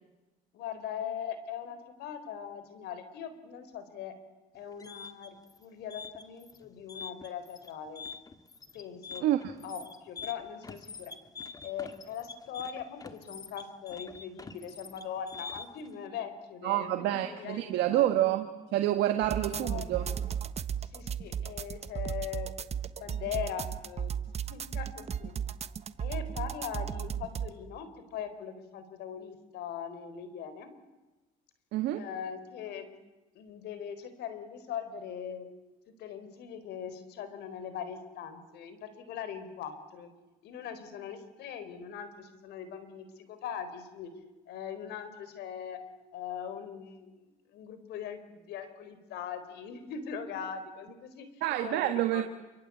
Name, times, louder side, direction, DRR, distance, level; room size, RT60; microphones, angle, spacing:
voice 1, 0.5-4.2 4.5-8.0 8.7-9.2 9.6-11.1 11.6-18.1 19.5-20.3 20.8-22.5 23.0-25.4 26.0-30.7 32.0-32.9 33.3-35.5 36.0-40.1 40.4-44.1 44.5-45.8 46.1-52.2, left 8 dB, 80° left, 11 dB, 4.3 m, -41 dB
sound 1, 4.6-15.9, left 4 dB, 20° left, 2.0 m, -45 dB
voice 2, 9.2-9.5 16.6-18.5 18.7-20.0 31.7-32.0 51.4-52.2, right 13 dB, 85° right, 6 dB, 1.7 m, -28 dB
sound 2, 19.2-27.5, right 8 dB, 40° right, 1.3 m, -35 dB
27.5 x 24.5 x 8.6 m, 1.1 s
cardioid pair, 110°, 17 cm